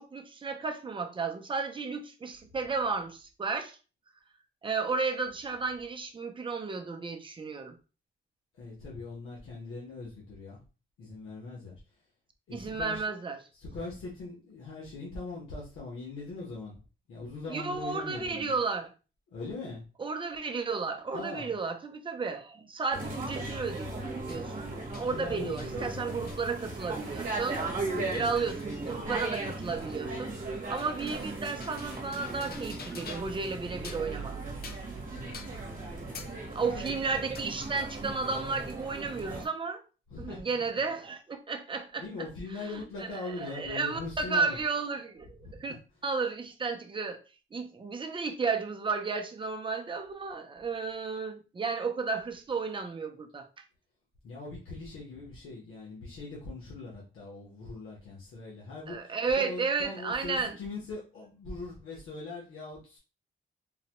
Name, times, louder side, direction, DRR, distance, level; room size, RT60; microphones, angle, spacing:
voice 1, 0.0-3.8 4.6-7.8 12.5-13.4 17.5-18.9 20.0-23.9 24.3-27.6 28.1-30.3 30.7-34.4 36.5-39.8 40.2-42.0 42.5-45.7 46.0-47.2 47.5-53.5 58.9-60.5, right 4 dB, 25° right, 0.4 m, -33 dB
voice 2, 8.6-10.6 11.0-11.8 12.5-13.0 13.5-16.8 17.1-18.5 19.3-19.8 21.1-21.5 24.9-26.1 27.9-28.2 35.1-35.6 36.6-36.9 40.1-40.4 42.0-44.6 45.4-45.6 54.2-63.0, left 3 dB, 90° left, 1.0 m, -41 dB
sound 1, 22.9-39.5, right 2 dB, 40° right, 1.0 m, -37 dB
sound 2, 24.3-24.5 24.9-25.1 25.6-25.8 26.3-26.4 26.8-33.4 33.7-34.1 34.6-35.0 35.3-35.6 36.1-36.4 36.9-38.5, left 5 dB, 50° left, 0.5 m, -49 dB
3.9 x 2.1 x 2.9 m
wide cardioid pair, 150°, 21 cm